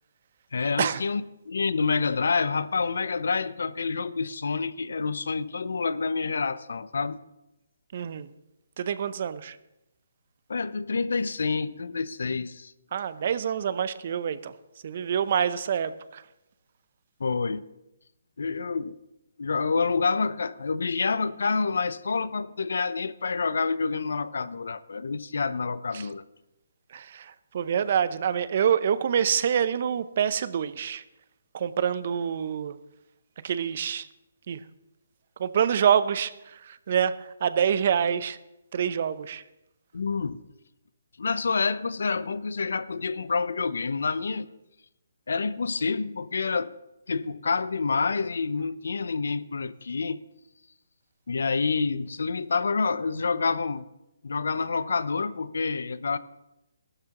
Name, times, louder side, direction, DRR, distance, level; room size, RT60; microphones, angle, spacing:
voice 1, 0.5-7.2 10.5-12.7 17.2-17.7 18.4-19.0 19.4-26.2 39.9-40.4 41.2-44.5 45.3-46.7 47.1-50.2 51.3-53.9 54.2-56.2, left 4 dB, 75° left, 0.6 m, -28 dB
voice 2, 7.9-8.3 8.8-9.6 12.9-14.5 14.8-16.2 25.9-26.1 26.9-31.0 31.5-32.8 33.4-34.1 34.5-34.6 35.4-38.4 38.7-39.4, right 8 dB, 50° right, 0.6 m, -26 dB
15.0 x 12.5 x 3.0 m
hypercardioid pair, 150°, 0 cm